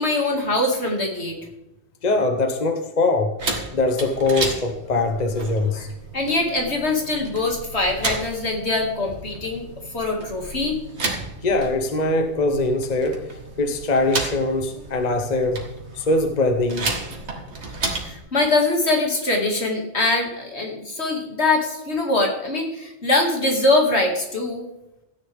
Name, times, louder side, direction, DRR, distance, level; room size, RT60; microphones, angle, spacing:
voice 1, 0.0-1.4 6.1-9.7 9.9-10.8 17.9-24.7, left 2 dB, 70° left, 1 dB, 2.6 m, -23 dB
voice 2, 2.0-3.3 3.7-5.9 11.4-15.7 15.9-16.9, left 2 dB, 40° left, 5 dB, 1.1 m, -22 dB
sound 1, 3.4-18.2, right 2 dB, 75° right, 2.1 m, -33 dB
15.0 x 10.0 x 3.5 m, 0.91 s
omnidirectional pair, 1.1 m